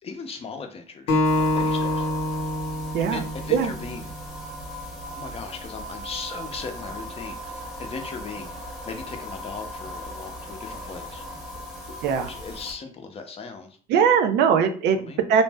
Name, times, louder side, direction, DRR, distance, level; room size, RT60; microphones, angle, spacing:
voice 1, 0.0-2.1 3.1-4.1 5.0-11.3 12.3-13.8 15.0-15.2, left 5 dB, 35° left, 5 dB, 0.6 m, -38 dB
Acoustic guitar, 1.1-4.4, left 1 dB, 85° left, 0.8 m, -26 dB
sound 1, 1.2-12.7, equal, ahead, 0.8 m, -38 dB
voice 2, 13.9-15.0 15.3-15.4, right 7 dB, 85° right, 7 dB, 0.5 m, -20 dB
2.6 x 2.0 x 3.3 m, 0.44 s
cardioid pair, 110°, 17 cm